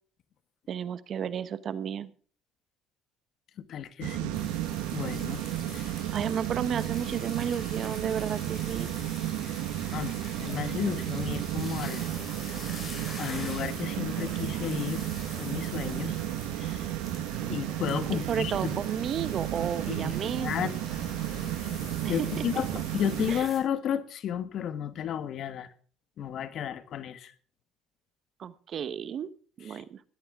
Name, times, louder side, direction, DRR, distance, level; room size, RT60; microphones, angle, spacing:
voice 1, 0.7-2.1 6.1-9.0 18.1-20.5 22.0-22.4 23.3-23.5 28.4-29.3 29.6-30.0, right 8 dB, 55° right, 1.1 m, -32 dB
voice 2, 3.7-4.5 4.9-6.1 9.9-12.1 13.2-15.0 15.4-16.2 16.6-16.9 17.5-18.8 19.9-20.8 22.1-25.7 26.2-27.3 29.7-29.8, left 9 dB, 60° left, 1.4 m, -33 dB
sound 1, 4.0-23.4, right 13 dB, 85° right, 1.5 m, -33 dB
sound 2, 4.3-23.6, left 3 dB, 30° left, 6.7 m, -45 dB
17.0 x 12.5 x 3.6 m
supercardioid pair, 75°, 0 cm